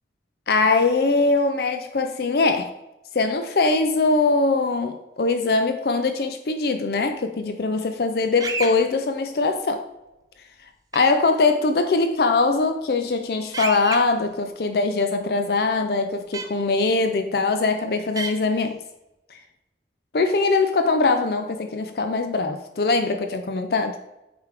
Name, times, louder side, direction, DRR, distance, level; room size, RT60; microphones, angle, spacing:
voice 1, 0.5-2.7 3.1-9.8 10.9-18.8 20.1-23.9, left 3 dB, 60° left, 7 dB, 0.5 m, -22 dB
sound 1, 8.4-8.7 10.9-11.0 13.5-14.0 16.3-16.4 18.2-18.3, right 3 dB, 20° right, 0.6 m, -29 dB
8.1 x 5.0 x 3.3 m, 0.95 s
head